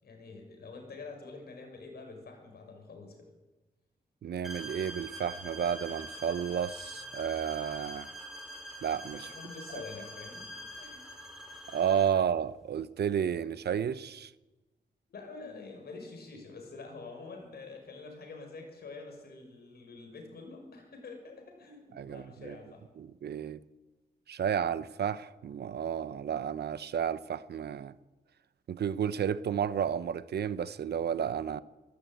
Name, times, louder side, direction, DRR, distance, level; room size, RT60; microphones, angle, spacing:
voice 1, 0.0-3.3 9.2-10.5 10.7-11.2 15.1-22.8, left 4 dB, 70° left, 6.2 m, -46 dB
voice 2, 4.2-8.1 8.8-9.3 11.7-14.3 22.0-22.5 23.0-23.6 24.3-27.9 28.7-31.6, right 8 dB, 80° right, 0.9 m, -32 dB
sound 1, 4.4-12.2, right 1 dB, ahead, 5.3 m, -44 dB
23.5 x 13.5 x 9.2 m
wide cardioid pair, 175°, 17 cm